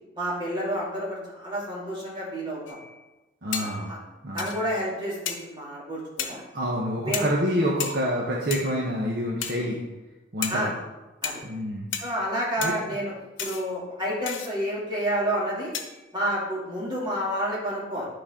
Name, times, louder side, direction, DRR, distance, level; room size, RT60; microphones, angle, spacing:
voice 1, 0.1-2.8 3.6-4.0 4.3-6.4 7.0-7.3 10.5-10.7 11.2-11.4 12.0-13.1 13.4-15.7 16.1-18.1, equal, 25° right, -7 dB, 2.7 m, -29 dB
sound 1, 2.7-3.0 3.5-4.0 4.4-4.8 5.3-5.6 6.2-6.5 7.1-7.5 7.8-8.2 8.5-9.0 9.4-9.9 10.4-10.8 11.2-11.6 11.9-12.3 12.6-13.0 13.4-13.7 14.3-14.5 15.7-16.1, left 7 dB, 80° left, 0.9 m, -35 dB
voice 2, 3.4-3.9 4.2-4.5 6.5-9.8 10.3-10.7 11.4-11.9 12.6-12.7, equal, 55° right, -3 dB, 1.1 m, -27 dB
10.0 x 5.4 x 3.8 m, 1.1 s
head